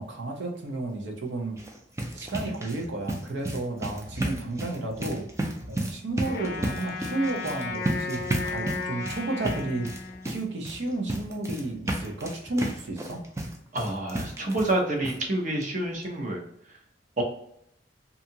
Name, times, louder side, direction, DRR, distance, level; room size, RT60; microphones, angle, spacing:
voice 1, 0.0-1.6 2.1-13.2, right 2 dB, 80° right, 2 dB, 0.6 m, -32 dB
sound 1, 1.5-14.8 15.0-15.2 15.6-15.7 16.0-16.1, right 1 dB, 15° right, 0.3 m, -33 dB
Wind instrument woodwind instrument, 6.2-10.6, left 4 dB, 55° left, 0.5 m, -35 dB
voice 2, 13.7-16.4 17.2-17.3, right 1 dB, 45° right, 0 dB, 0.7 m, -28 dB
2.7 x 2.4 x 2.7 m, 0.70 s
head